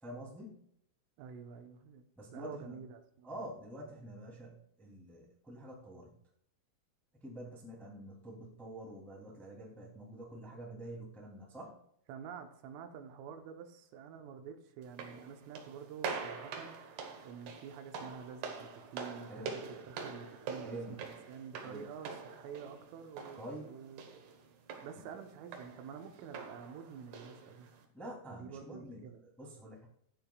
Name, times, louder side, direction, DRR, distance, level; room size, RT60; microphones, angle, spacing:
voice 1, 0.0-0.6 2.1-2.8 3.2-6.1 7.2-11.7 19.3-19.5 20.6-20.9 21.6-21.9 23.4-23.7 27.9-29.9, right 1 dB, ahead, -3 dB, 1.4 m, -47 dB
voice 2, 1.2-2.0 2.3-3.5 12.1-16.8 17.2-24.1 24.8-27.7 28.3-29.2, right 7 dB, 90° right, 5 dB, 3.7 m, -48 dB
sound 1, 14.8-27.9, right 5 dB, 65° right, 3.1 m, -45 dB
15.5 x 11.0 x 2.4 m, 0.69 s
omnidirectional pair, 5.6 m